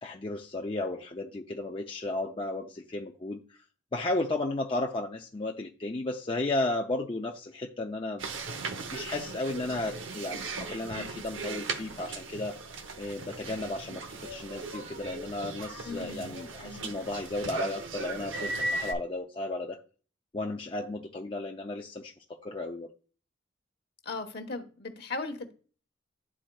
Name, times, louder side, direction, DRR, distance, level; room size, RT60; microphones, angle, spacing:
voice 1, 0.0-3.6 3.9-8.3 8.9-12.6 13.0-19.8 20.3-22.1 22.4-22.9, left 2 dB, 25° left, 0.5 m, -34 dB
sound 1, 8.2-18.9, right 3 dB, 85° right, 0.8 m, -37 dB
voice 2, 15.8-16.4 16.6-17.0 24.0-25.5, left 3 dB, 55° left, 1.0 m, -38 dB
11.5 x 4.3 x 2.2 m
head